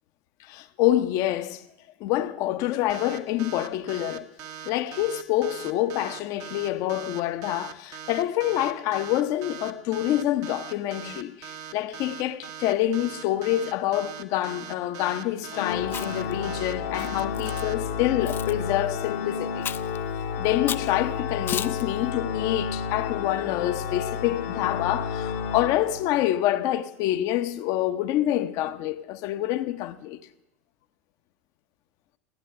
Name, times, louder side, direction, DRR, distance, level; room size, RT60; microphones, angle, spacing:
voice 1, 0.4-1.6 2.0-4.3 4.6-19.7 20.4-30.2, left 13 dB, 50° left, 0.8 m, -27 dB
sound 1, 2.9-17.7, right 8 dB, 45° right, 1.1 m, -40 dB
Organ, 15.5-26.4, left 6 dB, 65° left, 1.2 m, -31 dB
Chewing mastication, 15.8-16.3 17.0-17.6 18.3-18.5 19.6-20.0 20.7-20.9 21.5-21.8, left 9 dB, 30° left, 0.5 m, -33 dB
14.5 x 10.0 x 7.9 m
figure-of-eight pair, 80°, 7 cm